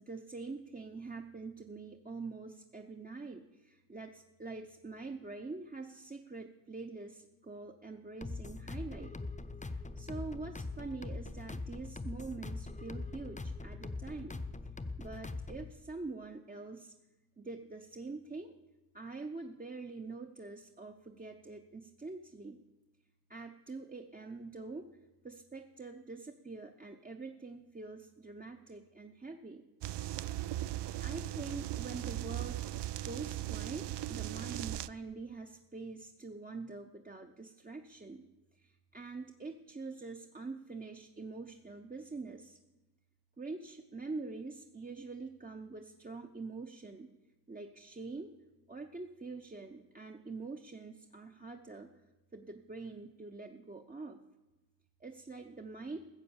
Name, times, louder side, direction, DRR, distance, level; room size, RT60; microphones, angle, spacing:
voice 1, 0.0-9.1 9.6-14.4 15.0-16.9 17.4-18.5 18.9-22.6 23.3-24.9 25.2-29.6 30.7-32.6 33.0-38.2 38.5-42.6 43.4-47.1 47.5-48.3 48.7-51.9 52.3-54.2 55.0-56.0, right 3 dB, 20° right, 3 dB, 0.7 m, -45 dB
sound 1, 8.2-15.7, left 3 dB, 20° left, 0.7 m, -42 dB
sound 2, 29.8-34.9, right 14 dB, 80° right, 0.5 m, -38 dB
15.0 x 7.7 x 7.1 m, 1.1 s
cardioid pair, 80°, 41 cm